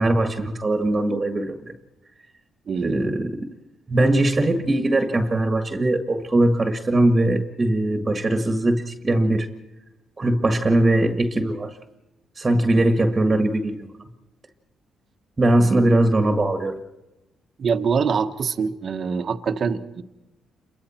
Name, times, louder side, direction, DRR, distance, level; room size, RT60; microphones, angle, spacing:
voice 1, 0.0-1.6 2.8-3.5 3.9-9.5 10.2-11.8 12.4-13.8 15.4-16.8, right 1 dB, 25° right, 6 dB, 1.8 m, -20 dB
voice 2, 2.7-3.0 17.6-20.0, right 5 dB, 50° right, 7 dB, 1.3 m, -24 dB
28.5 x 23.0 x 4.5 m, 1.0 s
cardioid pair, 90°, 0 cm